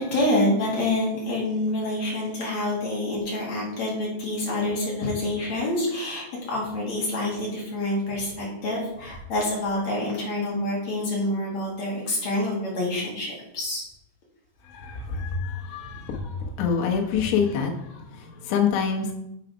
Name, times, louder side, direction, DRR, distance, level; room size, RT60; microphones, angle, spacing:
voice 1, 0.0-13.8, left 1 dB, 50° left, -4 dB, 2.2 m, -27 dB
voice 2, 14.6-19.1, left 6 dB, 75° left, 1 dB, 3.4 m, -26 dB
7.2 x 4.7 x 5.1 m, 0.81 s
omnidirectional pair, 5.8 m